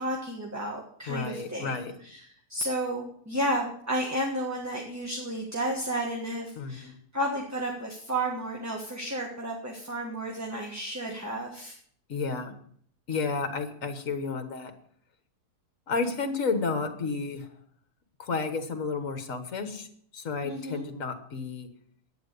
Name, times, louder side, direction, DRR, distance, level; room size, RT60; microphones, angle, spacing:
voice 1, 0.0-2.2 2.5-11.7 20.4-20.9, right 1 dB, 10° right, 0 dB, 1.4 m, -32 dB
voice 2, 1.1-1.9 6.6-7.0 12.1-12.5 13.1-14.7 15.9-17.5 18.2-19.9 20.1-21.7, left 4 dB, 60° left, 7 dB, 1.8 m, -31 dB
10.5 x 9.1 x 6.8 m, 0.63 s
omnidirectional pair, 1.6 m